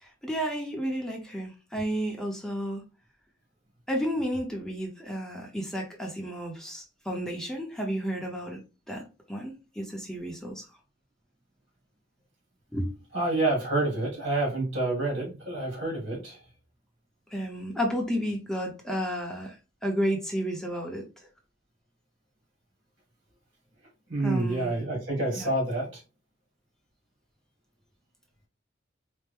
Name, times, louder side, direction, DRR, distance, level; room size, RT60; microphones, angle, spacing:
voice 1, 0.0-2.8 3.9-8.6 8.9-10.7 12.7-12.9 17.3-21.3 24.2-24.7 25.4-25.5, equal, 5° left, 0.7 m, -32 dB
voice 2, 13.1-16.4 24.1-26.0, right 2 dB, 85° right, 2.2 m, -28 dB
4.3 x 2.1 x 3.4 m
head